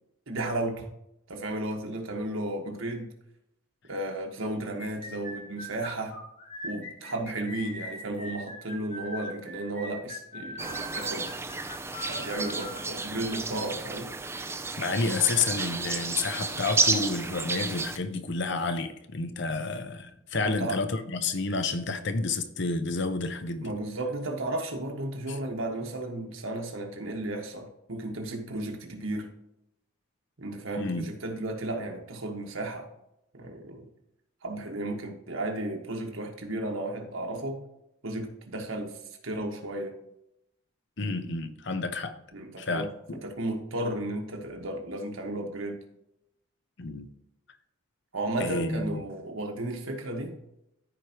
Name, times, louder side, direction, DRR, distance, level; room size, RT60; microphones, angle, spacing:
voice 1, 0.3-0.9 1.3-3.1 3.9-6.2 6.6-11.3 12.1-14.1 20.3-20.8 23.6-29.3 30.4-32.9 33.3-33.9 34.4-37.6 38.0-39.0 39.2-39.9 42.3-42.9 43.2-45.8 48.1-50.4, right 1 dB, 70° right, 1.5 m, -34 dB
sound 1, 4.8-12.8, left 1 dB, 35° left, 2.2 m, -41 dB
sound 2, 10.6-18.0, right 4 dB, 10° right, 0.4 m, -31 dB
voice 2, 14.8-23.7 25.3-25.4 30.8-31.1 41.0-42.2 42.6-43.2 46.8-47.1 48.4-49.0, left 3 dB, 55° left, 0.8 m, -30 dB
14.0 x 4.9 x 3.0 m
head